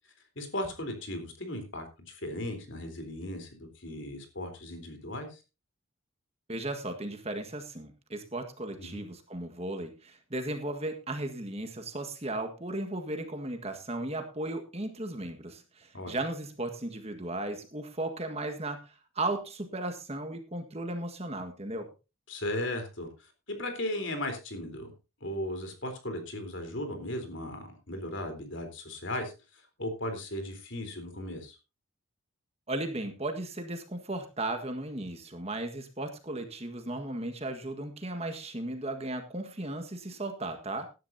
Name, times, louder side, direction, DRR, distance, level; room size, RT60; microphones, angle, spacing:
voice 1, 0.4-5.4 8.8-9.0 15.9-16.1 22.3-23.3 23.6-24.9 25.2-31.6, left 1 dB, 55° left, 6 dB, 3.8 m, -37 dB
voice 2, 6.5-21.9 32.7-40.9, right 2 dB, 30° right, 6 dB, 1.7 m, -36 dB
17.0 x 11.5 x 2.8 m, 0.29 s
head